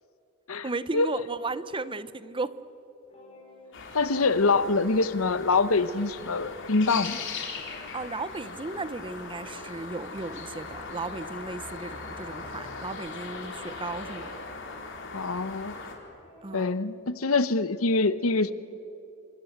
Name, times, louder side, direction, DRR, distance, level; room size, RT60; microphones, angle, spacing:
voice 1, 0.6-2.6 7.9-14.3 16.4-16.8, right 3 dB, 25° right, 15 dB, 0.8 m, -35 dB
sound 1, 3.0-5.8 6.0-16.7, equal, 30° left, 5.6 m, -54 dB
sound 2, 3.7-16.0, left 4 dB, 60° left, 4.1 m, -39 dB
voice 2, 3.9-7.2 15.1-15.8 16.5-18.5, left 3 dB, 80° left, 14 dB, 1.0 m, -25 dB
28.0 x 26.0 x 8.1 m, 2.9 s
head